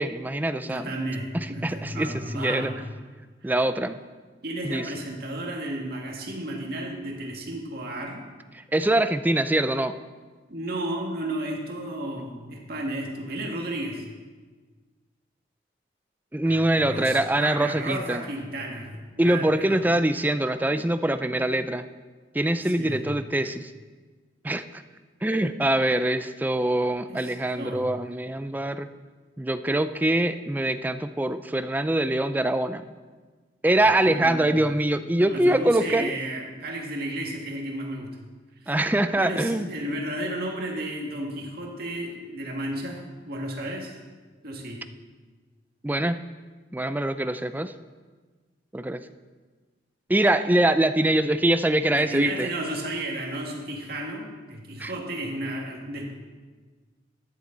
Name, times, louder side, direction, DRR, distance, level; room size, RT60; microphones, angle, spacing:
voice 1, 0.0-0.9 1.3-2.7 3.4-4.0 4.6-4.8 8.5-10.0 16.3-18.2 19.2-21.9 22.3-23.7 24.4-24.8 25.2-28.9 29.4-32.9 33.6-36.1 38.7-39.7 45.8-46.2 46.7-47.7 48.7-49.0 50.1-52.5 54.8-54.9, right 1 dB, 10° right, 10 dB, 0.4 m, -24 dB
voice 2, 0.6-2.8 3.4-3.5 4.4-8.2 10.5-14.1 16.4-19.9 22.7-23.0 27.1-27.9 33.7-33.8 34.1-34.7 35.3-38.2 38.6-38.7 39.2-44.0 44.4-44.8 51.9-56.1, right 1 dB, 55° right, 0 dB, 2.0 m, -33 dB
14.5 x 10.5 x 4.0 m, 1.4 s
head